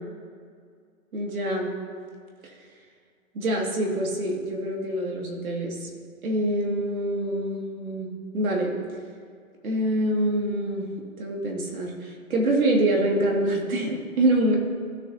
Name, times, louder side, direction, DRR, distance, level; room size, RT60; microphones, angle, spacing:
voice 1, 1.1-1.7 3.3-5.9 6.2-8.7 9.6-10.9 11.2-14.6, right 1 dB, 65° right, -1 dB, 2.5 m, -25 dB
16.0 x 7.1 x 2.9 m, 2.1 s
hypercardioid pair, 165°, 45 cm